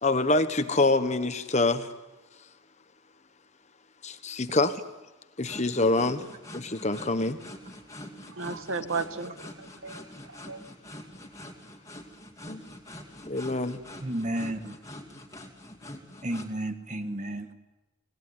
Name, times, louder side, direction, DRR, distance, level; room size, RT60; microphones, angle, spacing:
voice 1, 0.0-1.9 4.0-4.8 5.4-6.3 6.5-7.4 12.5-12.6 13.3-13.8, left 2 dB, 35° left, 1.3 m, -25 dB
sound 1, 5.4-16.5, left 1 dB, 15° left, 2.7 m, -45 dB
voice 2, 8.3-10.6, right 4 dB, 75° right, 1.6 m, -35 dB
voice 3, 14.0-14.8 16.2-17.6, right 1 dB, 35° right, 1.7 m, -32 dB
26.5 x 19.0 x 9.6 m
head